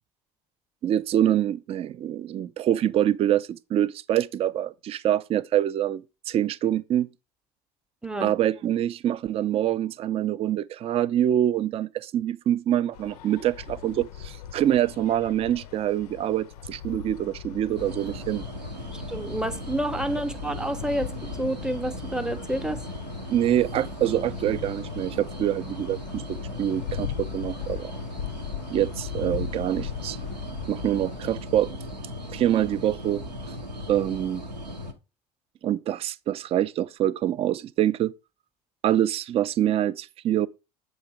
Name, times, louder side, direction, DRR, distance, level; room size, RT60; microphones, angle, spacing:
voice 1, 0.8-7.1 8.2-18.4 23.3-27.9 28.7-30.2 30.7-31.7 32.3-33.2 33.9-34.4 35.6-38.1 38.8-40.5, right 11 dB, 30° right, 0.3 m, -25 dB
voice 2, 8.0-8.3 18.9-21.1 21.4-22.8, right 1 dB, 5° right, 0.7 m, -29 dB
sound 1, 12.9-31.2, left 10 dB, 70° left, 0.4 m, -39 dB
sound 2, 17.8-34.9, left 1 dB, 90° right, 0.8 m, -37 dB
7.9 x 3.1 x 4.7 m
figure-of-eight pair, 65°, 20 cm